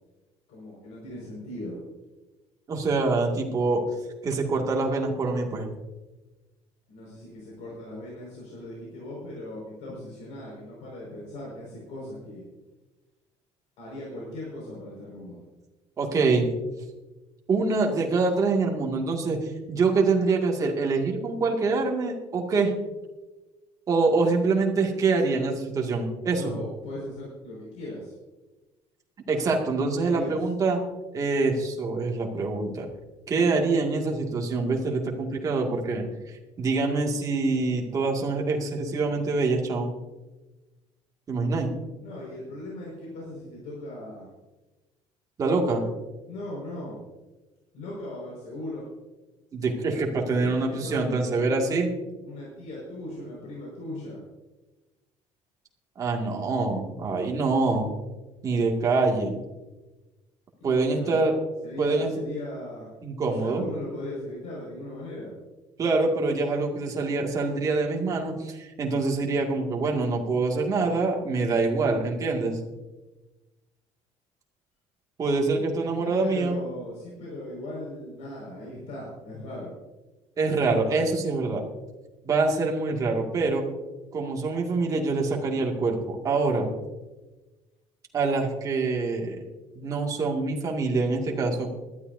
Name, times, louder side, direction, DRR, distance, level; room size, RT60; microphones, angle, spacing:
voice 1, 0.5-1.8 6.9-12.4 13.8-15.4 26.3-28.1 30.0-30.5 42.0-44.3 45.5-45.9 46.3-47.0 47.7-48.8 50.2-51.8 52.2-54.2 60.6-61.2 61.6-62.9 63.2-65.3 76.0-79.7, left 1 dB, 70° left, -4 dB, 5.5 m, -38 dB
voice 2, 2.7-3.8 4.2-5.7 16.0-16.5 17.5-22.7 23.9-26.5 29.3-30.8 31.1-32.9 33.3-36.1 36.6-39.9 41.3-41.7 45.4-45.8 49.5-51.9 56.0-57.9 58.4-59.3 60.6-61.3 61.8-62.1 63.0-63.6 65.8-72.6 75.2-76.6 80.4-81.6 82.2-83.6 84.1-86.7 88.1-89.4 89.8-91.7, right 3 dB, 30° right, 0 dB, 2.2 m, -25 dB
20.0 x 13.0 x 2.7 m, 1.1 s
cardioid pair, 160°, 12 cm